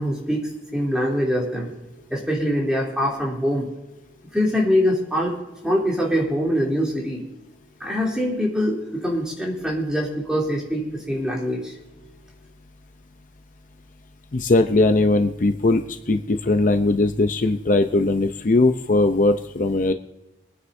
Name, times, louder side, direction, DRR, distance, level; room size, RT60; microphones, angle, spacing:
voice 1, 0.0-1.7 2.1-3.7 4.3-5.3 5.6-7.2 7.8-11.7, equal, 5° right, -3 dB, 3.0 m, -23 dB
voice 2, 14.3-19.9, left 2 dB, 45° left, 7 dB, 0.6 m, -19 dB
24.5 x 9.7 x 2.7 m, 1.0 s
head